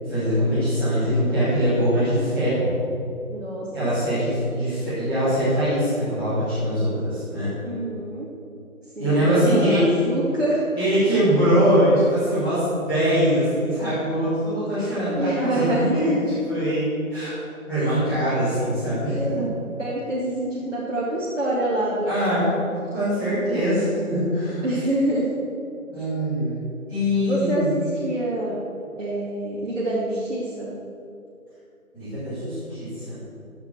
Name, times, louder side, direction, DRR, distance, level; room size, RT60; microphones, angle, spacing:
voice 1, 0.0-2.7 3.7-7.5 9.0-9.8 10.8-16.8 17.1-17.3 17.7-19.1 22.1-22.5 22.9-24.6 25.9-26.6 26.9-27.7 31.9-33.2, equal, 5° left, -19 dB, 2.6 m, -22 dB
voice 2, 3.3-4.1 7.6-8.3 9.0-10.6 15.1-15.9 17.7-17.9 19.1-19.5 19.8-22.5 24.6-25.3 27.2-28.6 29.0-30.8, right 1 dB, 55° right, -7 dB, 2.4 m, -26 dB
13.5 x 6.0 x 7.4 m, 2.6 s
figure-of-eight pair, 160°, 43 cm